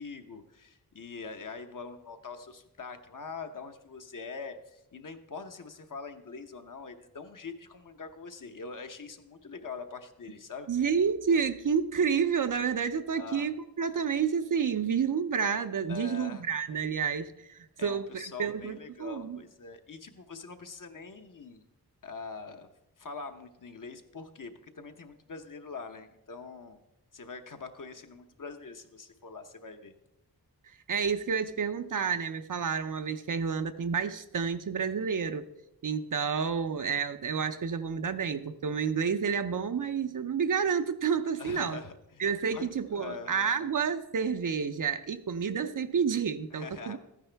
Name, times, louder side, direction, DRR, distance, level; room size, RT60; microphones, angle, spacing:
voice 1, 0.0-10.7 13.1-13.5 15.9-16.4 17.8-21.6 22.0-22.7 23.0-26.8 27.1-29.9 41.4-43.5 46.5-47.0, left 4 dB, 50° left, 7 dB, 0.9 m, -43 dB
voice 2, 10.7-19.4 30.9-35.5 35.8-41.8 42.2-47.0, right 6 dB, 55° right, 11 dB, 0.6 m, -30 dB
13.5 x 9.9 x 3.4 m, 0.90 s
wide cardioid pair, 100°, 39 cm